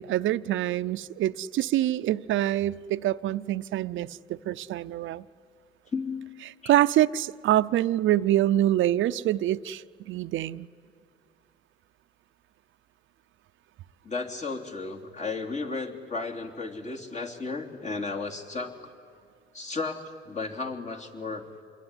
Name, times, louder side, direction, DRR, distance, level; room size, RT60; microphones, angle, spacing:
voice 1, 0.0-5.2 6.7-10.7, right 13 dB, 75° right, 13 dB, 0.6 m, -25 dB
voice 2, 5.9-6.3 6.6-6.7 14.0-18.8 19.5-21.4, left 3 dB, 35° left, 1 dB, 3.2 m, -34 dB
27.0 x 22.0 x 9.9 m, 2.4 s
cardioid pair, 90°, 20 cm